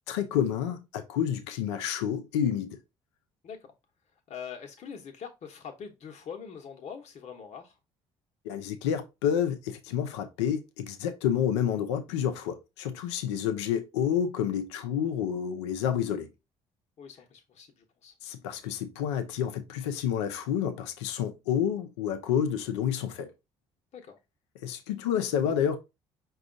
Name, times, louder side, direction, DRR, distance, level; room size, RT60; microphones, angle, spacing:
voice 1, 0.1-2.8 8.4-16.3 18.2-23.3 24.6-25.8, left 9 dB, 85° left, 0.5 m, -29 dB
voice 2, 3.4-3.7 4.3-7.8 17.0-18.1 23.9-24.2, left 7 dB, 55° left, 0.9 m, -43 dB
5.0 x 2.4 x 3.7 m
hypercardioid pair, 55°, 14 cm